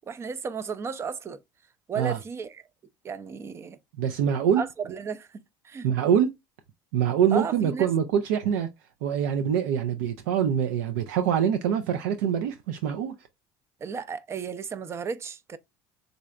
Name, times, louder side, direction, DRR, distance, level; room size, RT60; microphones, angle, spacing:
voice 1, 0.1-1.4 1.9-2.6 3.0-3.8 4.6-5.9 7.3-7.9 13.8-15.6, right 6 dB, 30° right, 0.4 m, -34 dB
voice 2, 4.0-4.6 5.8-6.3 6.9-8.7 9.0-13.1, right 8 dB, 90° right, 0.4 m, -24 dB
3.8 x 3.2 x 2.3 m
supercardioid pair, 105°, 9 cm